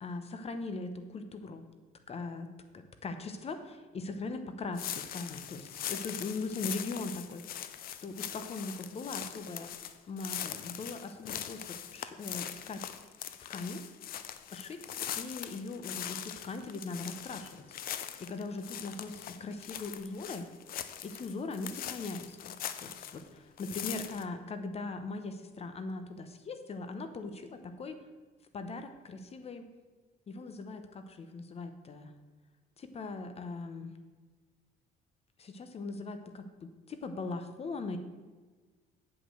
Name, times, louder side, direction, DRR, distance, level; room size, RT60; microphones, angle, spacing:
voice 1, 0.0-1.6 2.1-7.6 7.9-9.7 10.1-12.9 13.5-13.8 14.5-20.5 21.0-28.0 28.5-29.7 30.3-32.1 32.8-33.9 35.4-38.0, left 3 dB, 35° left, 8 dB, 0.9 m, -40 dB
sound 1, 4.7-23.3 23.6-24.2, left 10 dB, 60° left, 0.7 m, -41 dB
8.5 x 5.3 x 7.6 m, 1.3 s
cardioid pair, 110°, 17 cm